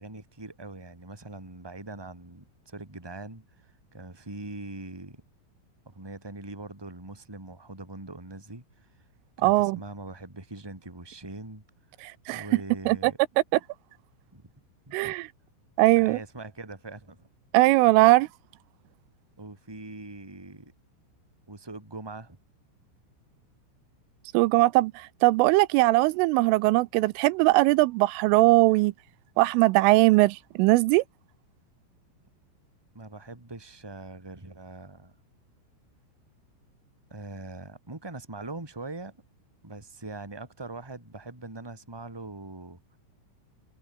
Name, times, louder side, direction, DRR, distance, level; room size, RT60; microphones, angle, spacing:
voice 1, 0.0-5.2 5.8-8.9 9.4-11.6 12.3-13.2 14.3-14.5 14.9-15.1 16.0-17.3 19.4-20.7 21.5-22.4 32.9-35.1 37.1-39.1 39.6-43.0, right 2 dB, 5° right, 2.9 m, -42 dB
voice 2, 9.4-9.8 12.0-12.4 12.9-13.1 14.9-15.3 15.8-16.2 17.5-18.3 24.3-28.9 29.4-31.0, right 21 dB, 85° right, 3.2 m, -20 dB
omnidirectional pair, 5.7 m